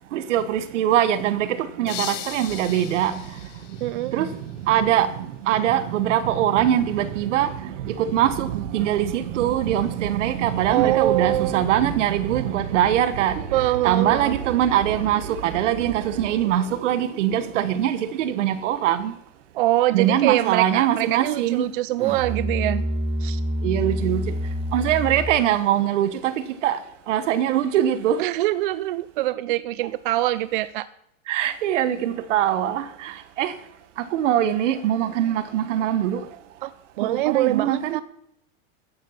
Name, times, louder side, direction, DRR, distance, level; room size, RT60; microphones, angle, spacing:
voice 1, 0.1-3.4 3.7-19.1 19.9-21.7 23.6-24.4 24.7-28.3 31.3-33.6 34.0-36.3 37.0-38.0, right 11 dB, 65° right, 1.4 m, -23 dB
sound 1, 1.9-4.6, left 12 dB, 65° left, 1.9 m, -37 dB
voice 2, 3.8-4.1 10.7-11.6 13.5-14.4 19.5-22.8 23.2-23.4 28.2-30.9 36.6-36.7 37.0-38.0, right 15 dB, 45° right, 0.4 m, -24 dB
Musical instrument, 22.0-25.5, equal, 15° right, 0.8 m, -27 dB
13.5 x 10.5 x 5.8 m
supercardioid pair, 165°, 39 cm